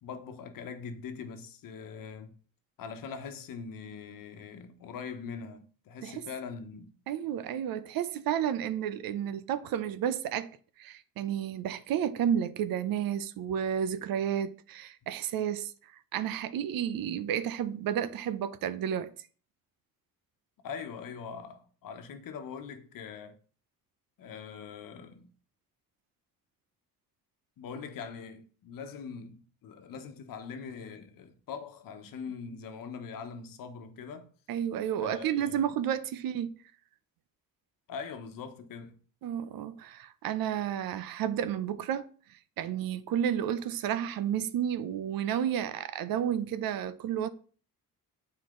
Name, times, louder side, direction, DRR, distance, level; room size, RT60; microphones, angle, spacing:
voice 1, 0.0-2.3 2.8-6.9 20.6-23.4 24.2-25.3 27.6-34.3 35.0-35.6 37.9-38.9, left 6 dB, 70° left, 1.1 m, -42 dB
voice 2, 7.1-10.5 10.8-15.7 16.1-19.1 34.5-36.5 39.2-42.1 42.6-47.3, right 9 dB, 75° right, 0.7 m, -31 dB
9.4 x 4.4 x 3.8 m
cardioid pair, 160°, 35 cm